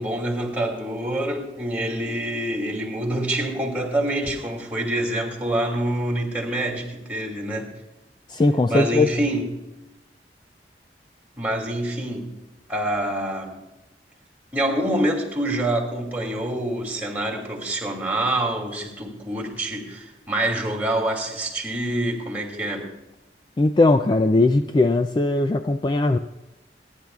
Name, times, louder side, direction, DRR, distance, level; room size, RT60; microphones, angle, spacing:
voice 1, 0.0-7.7 8.7-9.5 11.4-12.3 12.7-13.6 14.5-22.9, right 1 dB, 10° right, 2.6 m, -26 dB
voice 2, 8.3-9.1 23.6-26.2, left 2 dB, 25° left, 0.3 m, -19 dB
27.5 x 10.5 x 2.4 m
head